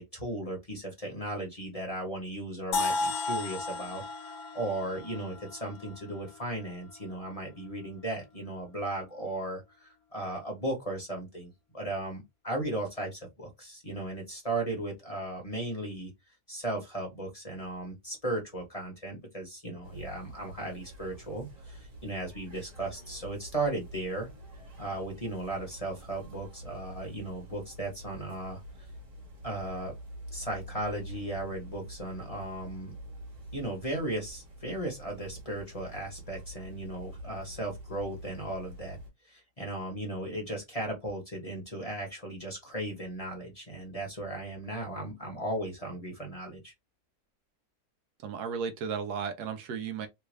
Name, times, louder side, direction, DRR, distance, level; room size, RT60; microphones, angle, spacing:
voice 1, 0.0-16.1 16.5-24.3 24.8-28.6 29.4-29.9 30.3-32.9 33.5-39.0 39.2-46.7, right 1 dB, 25° left, 1.0 m, -36 dB
sound 1, 2.7-6.6, left 3 dB, 75° left, 1.1 m, -34 dB
sound 2, 19.8-39.1, right 1 dB, 55° right, 1.6 m, -46 dB
voice 2, 48.2-50.1, right 6 dB, 80° right, 1.2 m, -34 dB
3.3 x 2.2 x 3.2 m
omnidirectional pair, 1.7 m